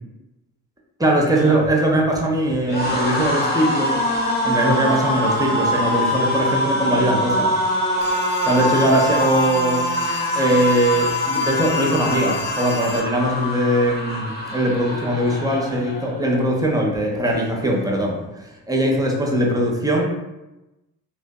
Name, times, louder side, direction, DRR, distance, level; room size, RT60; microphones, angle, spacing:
voice 1, 1.0-4.0 4.4-7.5 8.5-9.9 10.4-20.0, right 1 dB, 10° right, -1 dB, 0.5 m, -20 dB
sound 1, 1.2-16.4 16.8-17.0 17.2-18.0, equal, 20° left, 0.8 m, -24 dB
sound 2, 8.0-13.0, left 5 dB, 65° left, 0.7 m, -33 dB
2.5 x 2.2 x 2.3 m, 1.0 s
hypercardioid pair, 50°, 48 cm